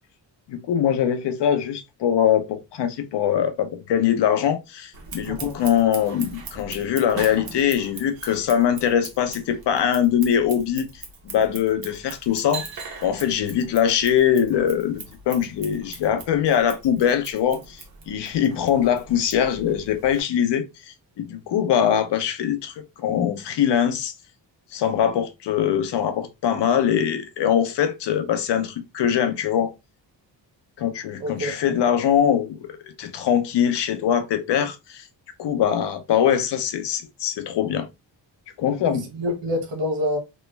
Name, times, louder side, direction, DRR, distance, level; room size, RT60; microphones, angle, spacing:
voice 1, 0.5-10.9 11.2-12.6 13.0-17.8 18.1-20.7 21.2-24.1 24.7-29.7 30.8-35.1 35.4-37.9 38.6-39.1, left 9 dB, 70° left, 0.7 m, -22 dB
Scissors, 4.9-20.2, right 4 dB, 55° right, 1.0 m, -40 dB
voice 2, 31.2-31.5 38.8-40.2, left 1 dB, 80° right, 1.1 m, -27 dB
3.1 x 2.2 x 3.1 m
wide cardioid pair, 130°, 43 cm